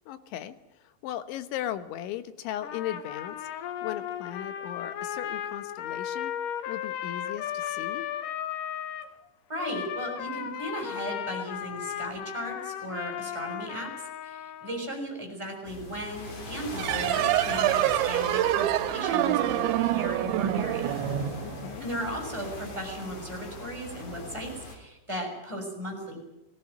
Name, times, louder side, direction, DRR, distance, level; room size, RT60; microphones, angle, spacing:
voice 1, 0.1-6.3 6.7-8.1 21.4-21.9, left 12 dB, 85° left, 11 dB, 3.6 m, -37 dB
Trumpet, 2.6-9.1 9.6-14.9, left 10 dB, 70° left, 2.2 m, -35 dB
voice 2, 9.5-13.9 14.2-21.3 21.8-26.2, right 1 dB, 5° right, 2 dB, 6.4 m, -36 dB
sound 1, 15.7-24.8, left 2 dB, 45° left, 4.9 m, -40 dB
sound 2, 16.7-22.0, right 13 dB, 90° right, 3.4 m, -26 dB
19.5 x 17.5 x 9.4 m, 0.89 s
omnidirectional pair, 5.2 m